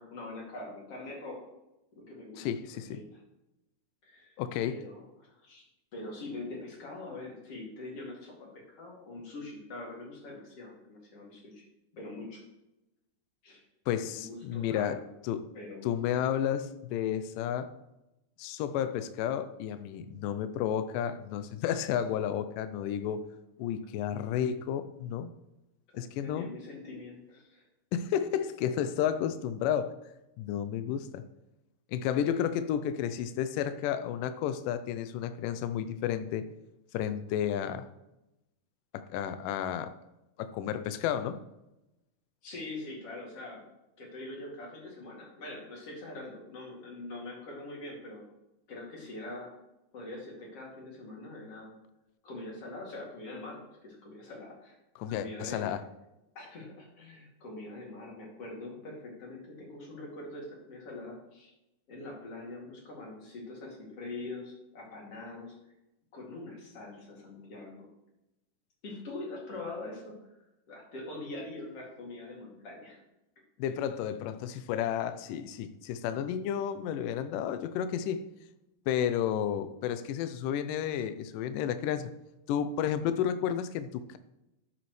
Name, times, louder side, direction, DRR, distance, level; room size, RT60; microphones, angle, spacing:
voice 1, 0.0-1.5 2.0-2.5 2.9-3.0 4.0-4.3 4.7-5.6 5.9-11.6 11.9-12.4 13.4-13.6 14.1-15.0 15.5-15.8 25.9-27.7 42.4-43.6 44.0-48.2 48.7-49.5 49.9-51.7 52.2-54.8 55.1-55.6 56.3-61.5 61.9-65.5 66.1-67.9 68.8-70.2 70.7-73.0, left 2 dB, 45° left, 3.2 m, -43 dB
voice 2, 2.4-3.0 4.4-4.8 13.9-15.5 15.8-17.7 18.4-23.3 23.6-25.3 26.0-26.5 27.9-30.1 30.4-31.2 31.9-36.5 36.9-37.9 38.9-39.9 40.4-41.4 55.0-55.9 73.6-78.3 78.9-82.1 82.5-84.2, left 9 dB, 80° left, 2.2 m, -32 dB
13.0 x 7.4 x 3.2 m
omnidirectional pair, 4.0 m